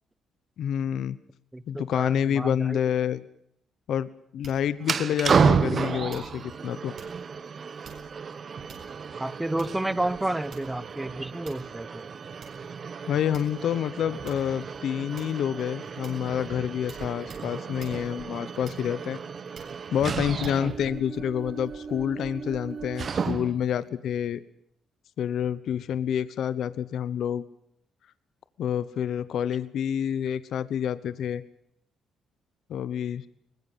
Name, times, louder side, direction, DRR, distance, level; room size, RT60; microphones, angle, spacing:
voice 1, 0.6-1.2 1.7-3.2 3.9-6.9 13.1-19.2 19.9-24.4 25.2-27.4 28.6-31.4 32.7-33.2, left 9 dB, 70° left, 15 dB, 1.0 m, -28 dB
voice 2, 1.5-2.8 9.2-12.0 20.6-20.8, right 1 dB, 10° right, 16 dB, 1.2 m, -31 dB
sound 1, 4.4-4.8 5.3-5.7 6.1-6.3 7.0-7.2 7.8-8.2 8.7-9.1 9.6-9.9 10.5-10.9 11.5-11.8 12.4-12.6 13.3-13.8 14.3-14.5 15.2-15.5 16.0-16.3 16.9-17.0 17.3-17.5 17.8-18.0 18.6-19.0 19.5-19.8 20.4-20.6, right 5 dB, 65° right, 7.7 m, -48 dB
sound 2, 4.8-23.7, right 5 dB, 45° right, 1.2 m, -31 dB
23.0 x 20.0 x 7.5 m, 0.73 s
cardioid pair, 90°, 0 cm